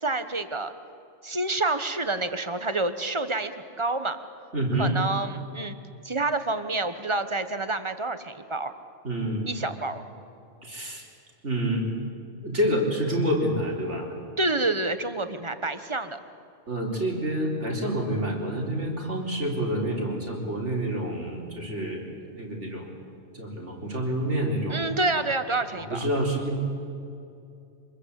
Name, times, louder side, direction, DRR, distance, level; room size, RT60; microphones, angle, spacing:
voice 1, 0.0-0.7 1.2-4.2 4.8-5.8 6.0-8.7 9.5-10.0 14.4-16.2 24.7-26.0, right 2 dB, 25° right, 10 dB, 1.2 m, -28 dB
voice 2, 4.5-5.0 9.0-9.5 10.6-11.0 11.4-12.1 12.4-14.1 16.7-22.9 23.3-24.8 25.9-26.6, right 1 dB, 80° right, 0 dB, 4.4 m, -28 dB
25.5 x 21.0 x 8.3 m, 2.6 s
omnidirectional pair, 1.2 m